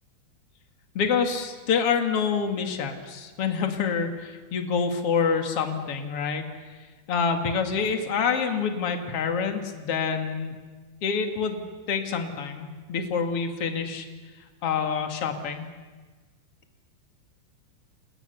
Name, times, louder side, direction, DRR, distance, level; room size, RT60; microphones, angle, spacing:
voice 1, 0.9-6.4 7.1-10.5 11.0-14.0 14.6-15.7, left 6 dB, 45° left, 5 dB, 1.9 m, -27 dB
29.5 x 28.5 x 7.0 m, 1.4 s
omnidirectional pair, 5.6 m